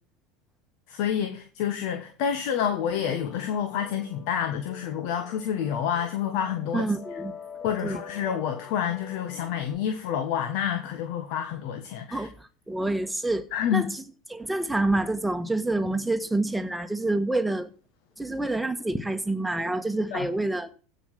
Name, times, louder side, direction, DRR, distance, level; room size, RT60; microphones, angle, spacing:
voice 1, 0.9-6.8 7.6-12.3 13.5-13.8 20.1-20.3, left 8 dB, 60° left, 1.4 m, -28 dB
sound 1, 2.9-9.7, left 6 dB, 30° left, 6.4 m, -45 dB
voice 2, 6.7-7.3 7.8-8.0 12.1-13.9 14.3-17.7 18.2-20.7, right 2 dB, 5° right, 1.4 m, -27 dB
15.5 x 5.6 x 6.3 m
hypercardioid pair, 85°, 0 cm